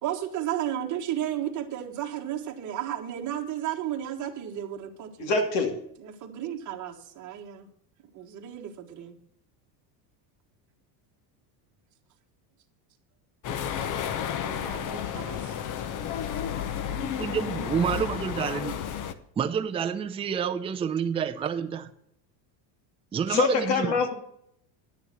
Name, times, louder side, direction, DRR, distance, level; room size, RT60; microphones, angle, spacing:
voice 1, 0.0-5.3 6.0-7.7 8.1-9.2 14.4-15.5, right 11 dB, 35° right, 1.5 m, -33 dB
voice 2, 5.2-5.7 23.3-24.1, left 4 dB, 55° left, 2.5 m, -24 dB
sound 1, 13.4-19.1, left 9 dB, 40° left, 0.9 m, -32 dB
voice 3, 17.2-18.8 19.4-21.9 23.1-24.0, right 7 dB, 10° right, 0.4 m, -28 dB
10.5 x 6.8 x 6.2 m
supercardioid pair, 135°, 50 cm